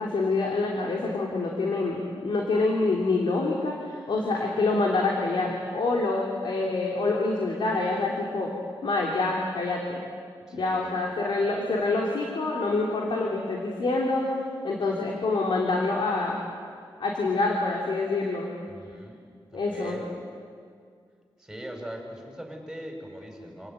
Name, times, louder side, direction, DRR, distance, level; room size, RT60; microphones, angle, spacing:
voice 1, 0.0-8.5 8.8-10.0 10.5-14.3 14.6-16.4 17.0-18.5 19.5-20.0, left 3 dB, 70° left, -1 dB, 3.3 m, -26 dB
voice 2, 10.5-11.2 18.7-19.2 19.5-20.1 21.4-23.7, equal, 5° right, 1 dB, 6.0 m, -41 dB
27.5 x 18.0 x 9.2 m, 2.2 s
wide cardioid pair, 110°, 9 cm